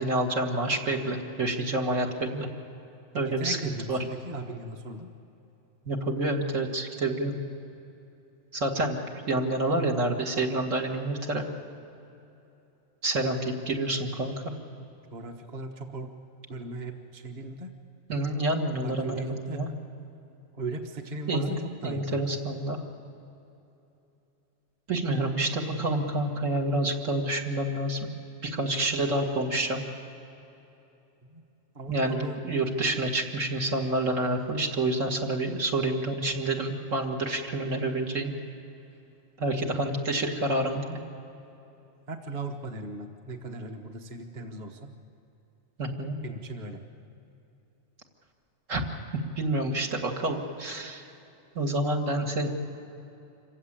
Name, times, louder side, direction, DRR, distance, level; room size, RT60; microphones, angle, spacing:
voice 1, 0.0-2.5 3.1-3.6 3.9-4.0 5.9-7.4 8.5-9.0 9.3-11.5 13.0-14.3 18.1-19.7 21.3-22.8 24.9-28.0 28.4-29.8 31.9-38.3 39.4-41.0 45.8-46.2 48.7-48.8 49.4-51.1 51.6-52.5, right 2 dB, 75° right, 1 dB, 2.3 m, -28 dB
voice 2, 3.1-5.1 15.1-16.1 16.5-17.7 18.8-19.6 20.5-22.2 31.3-31.4 31.7-32.4 42.1-44.9 46.2-46.8, right 2 dB, 35° right, 4 dB, 1.3 m, -38 dB
26.0 x 15.5 x 8.9 m, 2.9 s
omnidirectional pair, 1.3 m